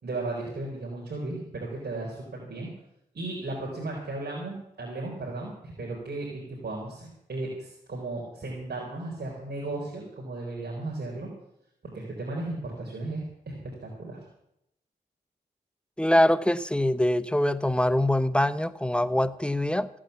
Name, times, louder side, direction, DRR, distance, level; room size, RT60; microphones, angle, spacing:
voice 1, 0.0-2.7 3.1-11.3 11.9-13.5 13.8-14.2, right 2 dB, 70° right, 4.2 m, -35 dB
voice 2, 16.0-19.9, left 1 dB, 5° left, 0.9 m, -24 dB
15.5 x 8.8 x 8.2 m
cardioid pair, 40°, 17 cm